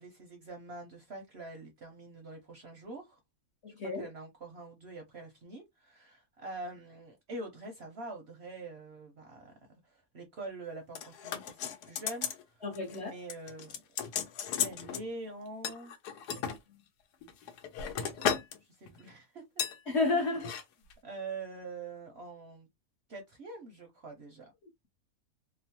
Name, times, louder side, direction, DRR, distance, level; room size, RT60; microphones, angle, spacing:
voice 1, 0.0-3.2 3.8-9.5 9.8-12.6 12.9-13.8 14.6-15.9 17.9-18.3 18.8-19.6 21.0-22.7 23.1-24.5, right 2 dB, 60° right, 0.7 m, -45 dB
voice 2, 3.6-4.1 12.6-13.1 19.9-20.5, left 3 dB, 60° left, 0.8 m, -31 dB
sound 1, 11.0-12.4 12.7-13.0 13.3-15.0 15.6-16.6 17.2-18.6 18.9-19.1 19.6-19.8 20.3-20.6 20.9-21.0, left 8 dB, 90° left, 1.2 m, -35 dB
3.0 x 2.0 x 2.8 m
omnidirectional pair, 1.7 m